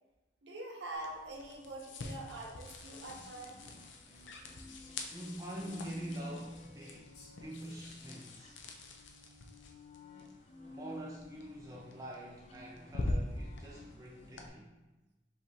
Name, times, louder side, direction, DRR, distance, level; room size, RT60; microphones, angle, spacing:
voice 1, 0.4-3.7, right 1 dB, 75° right, 0 dB, 0.8 m, -44 dB
sound 1, 0.9-14.5, left 1 dB, 90° left, 0.5 m, -45 dB
sound 2, 2.8-14.5, left 3 dB, 35° left, 0.5 m, -56 dB
sound 3, 3.0-3.4 3.6-4.4 5.5-5.9 6.9-8.1, left 3 dB, 75° left, 0.9 m, -62 dB
voice 2, 5.1-8.6 9.2-9.3 10.7-14.7, right 1 dB, 20° right, -3 dB, 0.4 m, -45 dB
5.0 x 3.4 x 2.7 m, 1.1 s
head